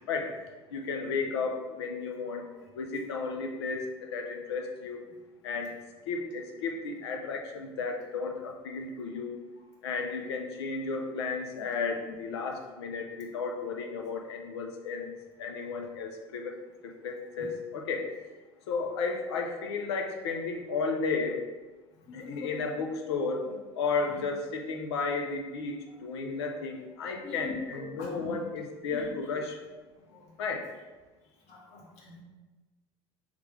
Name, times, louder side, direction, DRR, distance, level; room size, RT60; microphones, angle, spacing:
voice 1, 0.7-2.4 2.7-5.0 5.4-5.7 6.1-9.5 9.8-15.1 15.4-16.6 16.8-18.1 18.7-21.4 22.1-23.5 23.7-29.6 30.4-30.7, left 4 dB, 85° left, 3 dB, 0.6 m, -33 dB
voice 2, 22.1-22.5 27.2-28.4 28.9-29.1 30.1-30.3 31.5-32.2, left 3 dB, 60° left, -2 dB, 1.3 m, -42 dB
3.6 x 3.2 x 3.3 m, 1.2 s
hypercardioid pair, 85°, 13 cm